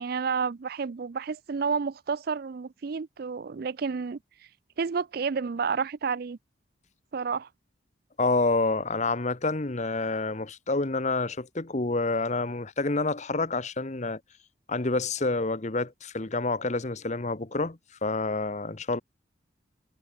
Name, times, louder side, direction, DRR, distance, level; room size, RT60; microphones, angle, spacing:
voice 1, 0.0-4.2 4.8-6.4 7.1-7.5, right 5 dB, 50° right, 0.4 m, -30 dB
voice 2, 8.2-14.2 14.7-19.0, left 3 dB, 35° left, 1.0 m, -28 dB
head